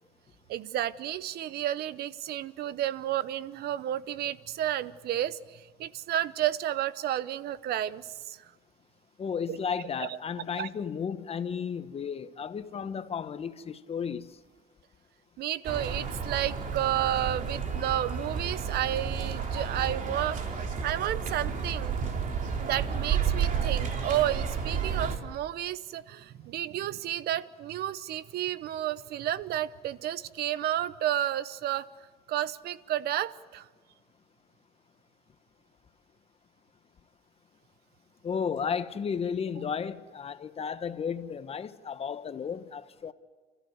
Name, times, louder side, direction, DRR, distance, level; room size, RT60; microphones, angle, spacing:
voice 1, 0.5-8.5 9.5-9.6 10.0-10.2 10.6-10.7 15.4-20.4 20.8-22.0 22.6-31.9 32.3-33.7, right 12 dB, 70° right, 0.9 m, -31 dB
voice 2, 9.2-14.3 38.2-43.1, left 6 dB, 35° left, 1.1 m, -33 dB
sound 1, 15.6-25.2, right 6 dB, 50° right, 3.1 m, -31 dB
30.0 x 14.5 x 9.4 m
cardioid pair, 110°, 17 cm